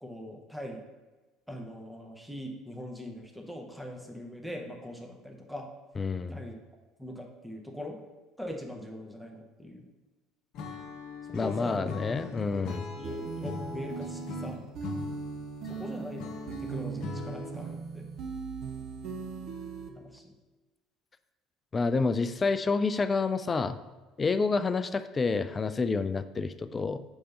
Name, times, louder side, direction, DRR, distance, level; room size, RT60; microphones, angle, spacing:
voice 1, 0.0-0.8 1.5-5.7 6.3-6.5 7.0-8.0 8.4-9.8 11.4-11.9 12.5-12.6 13.0-14.9 15.7-16.3 16.6-18.1 20.0-20.3, left 1 dB, ahead, 1 dB, 0.9 m, -41 dB
voice 2, 6.0-6.4 11.3-12.8 21.7-23.8 24.2-27.0, left 4 dB, 25° left, 11 dB, 0.3 m, -28 dB
Acoustic guitar / Strum, 10.5-17.7, left 4 dB, 50° left, 0.7 m, -40 dB
sound 1, 13.0-19.9, right 5 dB, 50° right, 0.6 m, -39 dB
5.3 x 3.3 x 5.3 m, 1.2 s
figure-of-eight pair, 60°, 0 cm